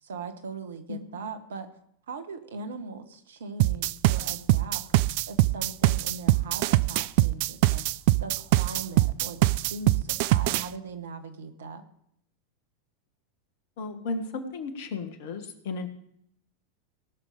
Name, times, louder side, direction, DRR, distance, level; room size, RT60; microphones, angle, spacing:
voice 1, 0.0-1.7 2.1-4.8 5.3-7.8 8.2-11.8, right 4 dB, 70° right, 9 dB, 1.3 m, -40 dB
sound 1, 3.6-10.7, right 17 dB, 55° right, 0.3 m, -23 dB
voice 2, 13.8-15.9, left 3 dB, 60° left, 8 dB, 1.7 m, -34 dB
18.5 x 6.5 x 5.1 m, 0.71 s
figure-of-eight pair, 85°, 0 cm